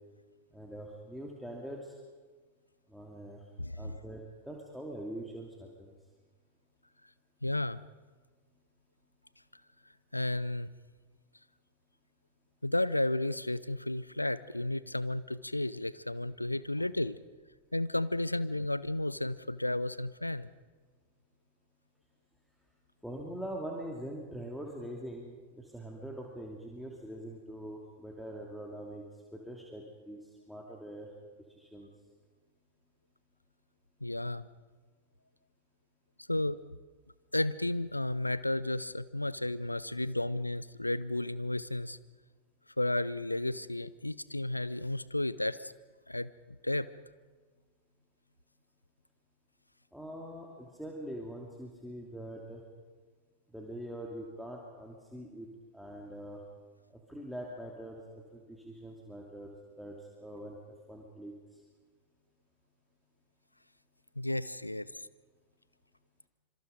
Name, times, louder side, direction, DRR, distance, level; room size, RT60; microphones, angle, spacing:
voice 1, 0.5-1.9 2.9-3.4 3.8-5.9 23.0-29.0 29.3-31.1 31.5-31.9 49.9-52.6 53.5-56.4 56.9-60.6 60.9-61.3, right 1 dB, ahead, -1 dB, 2.8 m, -43 dB
voice 2, 3.6-4.0 7.4-7.8 10.1-10.7 12.6-17.2 17.7-20.5 34.0-34.4 36.3-36.6 37.3-42.0 42.8-45.7 46.1-46.9 64.2-64.9, left 1 dB, 85° left, 17 dB, 0.7 m, -33 dB
26.0 x 25.5 x 5.2 m, 1.4 s
figure-of-eight pair, 90°, 0 cm